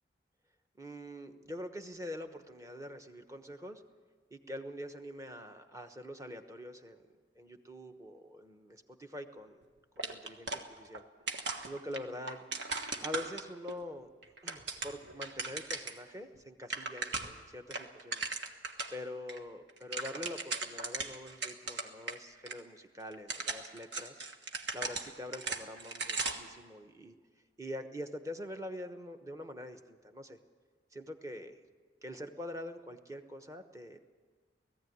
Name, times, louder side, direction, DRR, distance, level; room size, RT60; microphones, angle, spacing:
voice 1, 0.8-3.8 4.3-9.6 10.0-11.0 11.6-12.4 13.0-14.1 14.4-18.2 18.9-24.2 24.7-27.1 27.6-30.4 30.9-31.6 32.0-34.0, left 1 dB, 15° right, 6 dB, 1.1 m, -44 dB
sound 1, 10.0-11.0 11.3-13.7 14.2-16.0 16.3-16.4 16.6-17.4 17.7-19.0 19.3-19.4 19.7-22.2 22.5-22.6 23.1-26.5, right 3 dB, 65° right, 1.5 m, -38 dB
18.5 x 15.0 x 9.5 m, 1.5 s
head